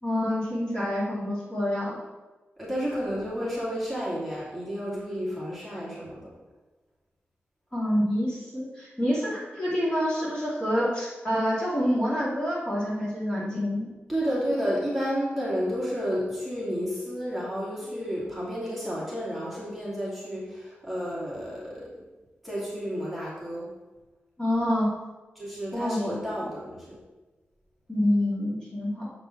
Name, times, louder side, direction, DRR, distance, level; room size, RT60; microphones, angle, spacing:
voice 1, 0.0-2.0 7.7-13.9 24.4-24.9 25.7-26.2 27.9-29.1, equal, 20° left, -7 dB, 2.4 m, -27 dB
voice 2, 2.6-6.3 14.1-21.9 22.4-23.7 25.4-27.0, equal, ahead, -8 dB, 2.4 m, -31 dB
7.5 x 5.1 x 5.8 m, 1.2 s
wide cardioid pair, 170°, 4 cm